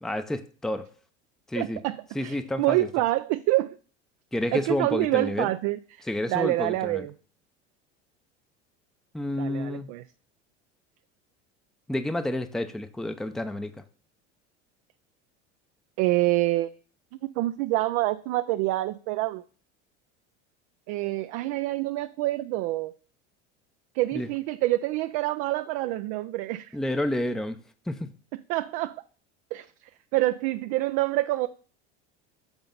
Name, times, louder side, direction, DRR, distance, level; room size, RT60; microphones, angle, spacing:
voice 1, 0.0-0.9 1.5-1.8 2.1-2.9 4.3-5.5 6.0-7.1 9.1-10.0 11.9-13.8 24.1-24.3 26.7-28.1, left 1 dB, ahead, 0.6 m, -30 dB
voice 2, 1.5-2.0 2.2-3.8 4.5-6.0 6.3-7.1 9.4-10.0 16.0-16.7 17.2-19.4 20.9-22.9 23.9-26.8 28.5-29.0 29.5-29.7 30.1-31.5, right 17 dB, 60° right, 0.5 m, -26 dB
8.0 x 4.0 x 5.3 m
hypercardioid pair, 85°, 35 cm